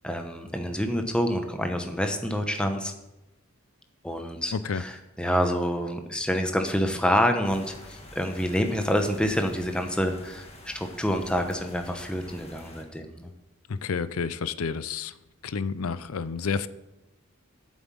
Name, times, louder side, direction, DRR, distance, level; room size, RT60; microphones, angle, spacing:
voice 1, 0.0-2.9 4.0-13.3, equal, 5° left, 5 dB, 0.9 m, -27 dB
voice 2, 4.5-4.8 13.7-15.1 15.4-16.7, left 5 dB, 75° left, 16 dB, 0.5 m, -30 dB
sound 1, 7.4-12.8, left 1 dB, 30° left, 1.5 m, -47 dB
8.9 x 7.3 x 7.5 m, 0.96 s
head